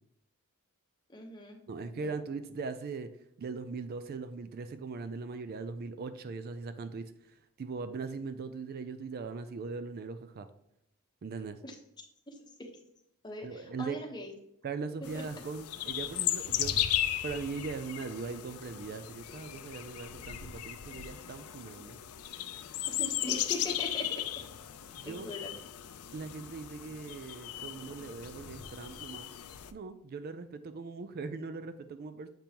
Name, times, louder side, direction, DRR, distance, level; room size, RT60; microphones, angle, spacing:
voice 1, 1.1-2.2 11.6-11.8 12.3-12.5 13.2-14.3 15.1-15.2 22.9-24.2 25.0-25.5 25.9-26.1, left 1 dB, 20° left, 2 dB, 1.0 m, -41 dB
voice 2, 1.7-3.1 3.4-10.5 11.2-11.6 13.4-14.0 14.6-16.7 17.2-22.0 25.0-25.3 26.1-29.3 29.7-32.3, right 4 dB, 45° right, 11 dB, 0.4 m, -40 dB
sound 1, 15.0-29.7, left 12 dB, 75° left, 0.5 m, -36 dB
7.4 x 5.3 x 2.9 m, 0.79 s
head